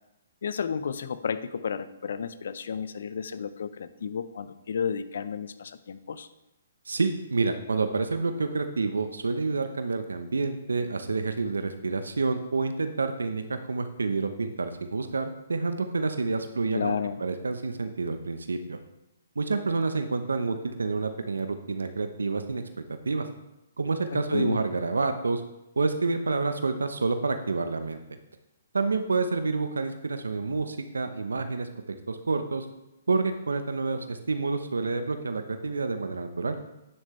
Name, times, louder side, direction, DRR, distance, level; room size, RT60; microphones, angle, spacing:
voice 1, 0.4-6.3 16.7-17.2 24.1-24.6, left 7 dB, 65° left, 13 dB, 0.7 m, -32 dB
voice 2, 6.9-18.8 19.4-22.6 23.0-23.3 23.8-25.4 25.8-28.0 28.7-31.7 32.1-32.7 33.1-36.5, right 3 dB, 80° right, 8 dB, 0.8 m, -28 dB
11.0 x 9.8 x 3.2 m, 0.91 s
hypercardioid pair, 135°, 0 cm